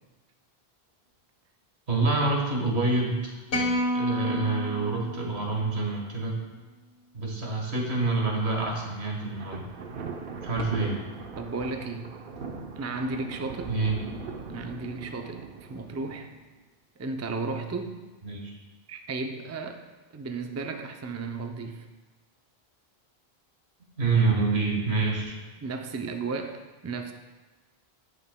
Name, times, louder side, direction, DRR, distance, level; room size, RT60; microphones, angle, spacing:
voice 1, 1.9-3.3 3.9-6.4 7.1-9.6 10.4-11.0 13.7-13.9 18.2-18.5 24.0-25.4, right 3 dB, 80° right, -1 dB, 1.7 m, -27 dB
sound 1, 3.5-5.9, equal, 90° left, 1.7 m, -30 dB
Thunder, 9.2-16.5, right 4 dB, 60° right, 0.9 m, -40 dB
voice 2, 11.4-12.1 12.8-13.7 14.5-16.3 17.0-18.0 18.9-19.8 20.1-21.9 25.6-27.1, right 3 dB, 25° right, 5 dB, 0.4 m, -34 dB
16.0 x 5.5 x 2.2 m, 1.3 s
omnidirectional pair, 1.1 m